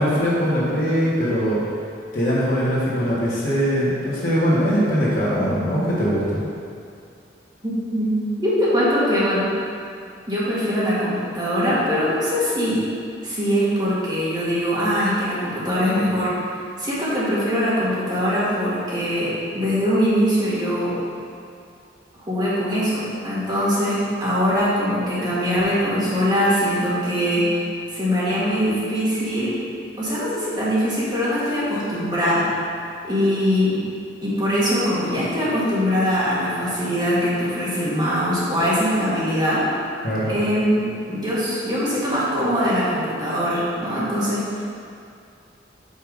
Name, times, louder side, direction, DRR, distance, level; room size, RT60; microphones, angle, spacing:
voice 1, 0.0-1.6 2.1-6.4 40.0-40.3, equal, 45° left, -8 dB, 1.7 m, -21 dB
voice 2, 7.6-9.5 10.3-12.8 13.2-16.3 16.8-21.0 22.3-27.6 27.9-29.6 30.0-32.5 33.0-33.8 34.2-39.7 40.3-44.6, equal, 25° right, -9 dB, 1.6 m, -22 dB
5.6 x 4.9 x 5.1 m, 2.4 s
head